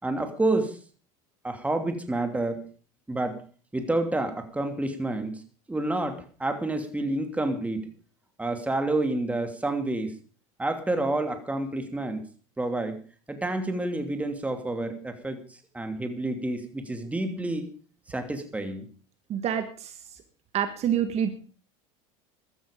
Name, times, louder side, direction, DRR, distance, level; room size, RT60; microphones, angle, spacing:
voice 1, 0.0-0.8 1.4-2.6 3.1-3.4 3.7-5.4 5.7-7.9 8.4-10.1 10.6-12.2 12.6-13.0 13.3-15.4 15.7-17.7 18.1-18.9, right 2 dB, 10° right, 6 dB, 2.8 m, -29 dB
voice 2, 19.3-20.2 20.5-21.3, right 9 dB, 40° right, 9 dB, 1.6 m, -27 dB
15.5 x 12.5 x 5.2 m, 0.40 s
supercardioid pair, 115°, 16 cm